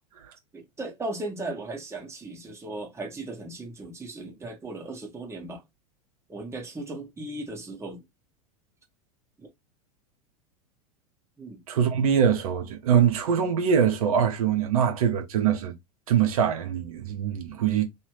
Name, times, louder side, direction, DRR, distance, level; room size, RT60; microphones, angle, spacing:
voice 1, 0.5-5.6 6.3-8.0 9.4-9.5 11.4-11.6, right 2 dB, 15° right, 1.3 m, -37 dB
voice 2, 11.7-15.7 16.1-17.8, right 8 dB, 65° right, 0.9 m, -23 dB
3.2 x 2.7 x 3.0 m
figure-of-eight pair, 90°, 19 cm